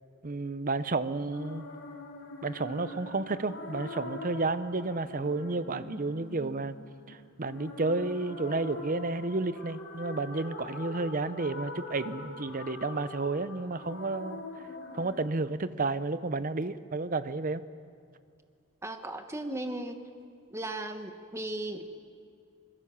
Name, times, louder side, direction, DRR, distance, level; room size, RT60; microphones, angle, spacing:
voice 1, 0.2-1.6 2.4-6.8 7.1-14.4 14.9-17.6, right 3 dB, 40° right, 13 dB, 0.7 m, -31 dB
sound 1, 1.3-15.2, left 2 dB, 65° left, 3.7 m, -43 dB
voice 2, 18.8-20.0 20.5-22.0, right 1 dB, 15° right, 6 dB, 1.3 m, -36 dB
25.0 x 22.0 x 7.2 m, 2.3 s
head